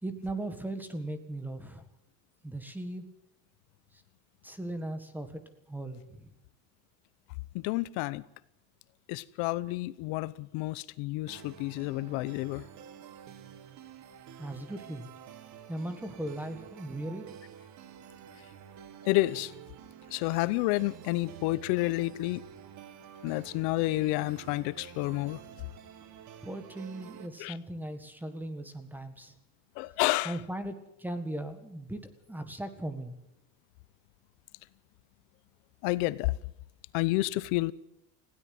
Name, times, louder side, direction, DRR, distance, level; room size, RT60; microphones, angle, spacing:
voice 1, 0.0-1.8 2.4-3.1 3.9-4.0 4.4-5.4 5.7-6.3 14.4-15.1 15.7-17.3 26.4-29.3 30.2-33.2, right 1 dB, 5° right, 1.6 m, -38 dB
voice 2, 7.5-8.2 9.1-12.6 19.0-19.5 20.1-22.4 23.2-25.4 27.4-27.5 29.8-30.4 35.8-36.4 36.9-37.7, left 19 dB, 80° left, 1.0 m, -30 dB
sound 1, 11.3-27.3, right 9 dB, 45° right, 2.1 m, -49 dB
20.5 x 16.5 x 7.8 m
cardioid pair, 170°, 39 cm